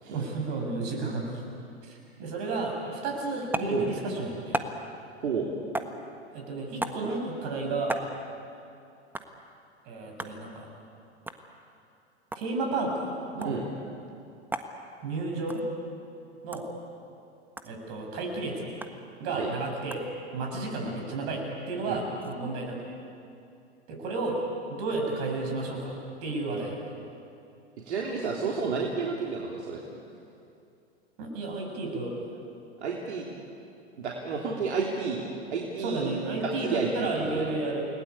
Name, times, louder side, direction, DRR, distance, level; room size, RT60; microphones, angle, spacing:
voice 1, 0.1-1.4 1.8-4.6 6.3-8.1 9.9-10.7 12.3-13.6 15.0-15.6 16.4-16.7 17.6-18.7 19.2-20.0 20.3-22.8 23.9-24.4 24.7-25.9 26.2-26.8 31.2-32.4 35.8-37.8, right 3 dB, 50° right, 1 dB, 8.0 m, -32 dB
sound 1, 3.5-3.8 4.5-4.8 5.7-6.0 6.8-7.0 7.9-8.1 9.1-9.3 10.2-10.4 11.3-11.4 12.2-12.5 13.4-13.6 14.5-14.7 15.5-15.6 16.5-16.7 17.6-17.7 18.8-19.0 19.9-20.1 21.7-22.4, right 2 dB, 5° right, 1.5 m, -34 dB
voice 2, 27.8-29.8 32.8-33.3 34.0-35.2 35.5-36.1 36.4-37.5, right 5 dB, 70° right, -2 dB, 3.5 m, -31 dB
29.5 x 20.5 x 8.7 m, 2.6 s
hypercardioid pair, 100°, 34 cm